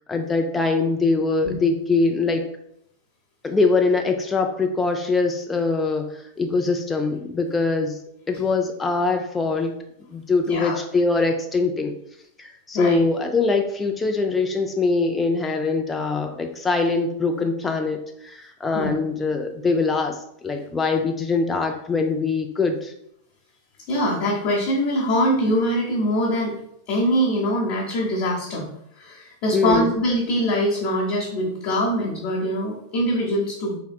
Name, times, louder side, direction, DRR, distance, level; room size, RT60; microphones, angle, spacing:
voice 1, 0.1-2.4 3.4-8.0 8.3-9.7 10.1-11.9 12.4-22.9 29.5-29.9, left 3 dB, 15° left, 4 dB, 0.3 m, -23 dB
voice 2, 10.4-10.8 12.7-13.0 18.7-18.9 23.9-26.6 26.9-28.7 29.0-33.8, equal, 45° left, -5 dB, 0.9 m, -23 dB
3.6 x 3.2 x 2.3 m, 0.75 s
figure-of-eight pair, 90°, 0 cm